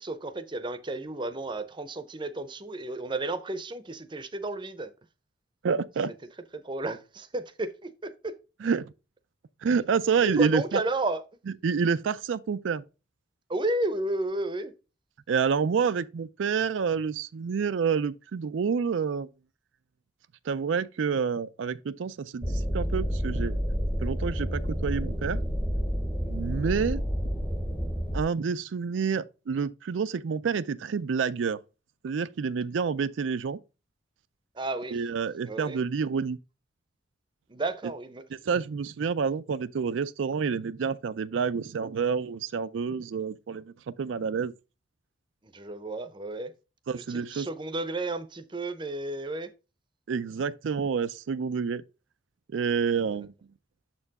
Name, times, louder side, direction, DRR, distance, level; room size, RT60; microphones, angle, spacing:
voice 1, 0.0-4.9 6.5-8.4 10.2-11.2 13.5-14.7 34.6-35.0 35.4-35.8 37.5-38.2 45.4-46.5 46.9-49.5 53.0-53.2, right 2 dB, 25° right, 0.6 m, -32 dB
voice 2, 5.6-6.1 8.6-8.9 9.6-10.8 11.6-12.8 15.3-19.3 20.5-23.6 24.0-25.4 26.3-27.0 28.1-31.6 32.0-33.6 34.9-36.4 38.4-44.5 46.9-47.5 50.1-51.8 52.5-53.3, right 6 dB, 80° right, 0.4 m, -28 dB
sound 1, 22.4-28.2, equal, 10° left, 0.8 m, -29 dB
6.9 x 4.4 x 4.0 m
head